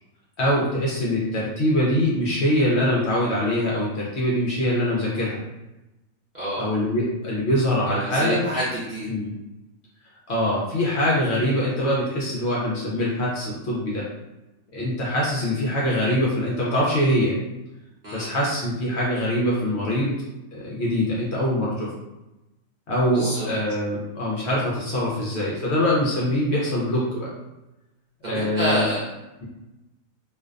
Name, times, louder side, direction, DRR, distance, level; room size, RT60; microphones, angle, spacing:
voice 1, 0.4-5.4 6.6-8.4 9.1-9.3 10.3-14.1 14.7-17.3 18.1-20.2 20.5-21.9 22.9-27.3 28.2-28.9, equal, 60° left, -5 dB, 0.8 m, -23 dB
voice 2, 6.3-6.7 7.9-9.1 18.0-18.3 23.1-23.5 28.2-29.0, right 1 dB, 45° right, -10 dB, 0.6 m, -27 dB
2.5 x 2.1 x 2.4 m, 0.98 s
omnidirectional pair, 1.5 m